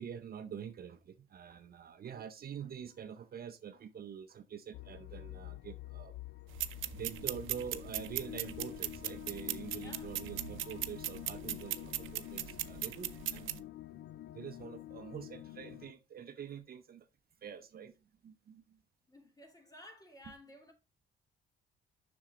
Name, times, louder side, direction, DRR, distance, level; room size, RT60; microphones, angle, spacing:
voice 1, 0.0-6.2 6.9-17.1 17.4-17.9 18.2-18.8 20.2-20.3, right 8 dB, 50° right, 0.7 m, -46 dB
sound 1, 4.7-15.9, left 14 dB, 60° left, 0.4 m, -47 dB
sound 2, 6.5-13.6, right 14 dB, 80° right, 0.6 m, -39 dB
voice 2, 9.7-10.2 19.1-20.7, left 1 dB, 20° left, 2.5 m, -54 dB
7.3 x 6.2 x 3.6 m
cardioid pair, 90°, 20 cm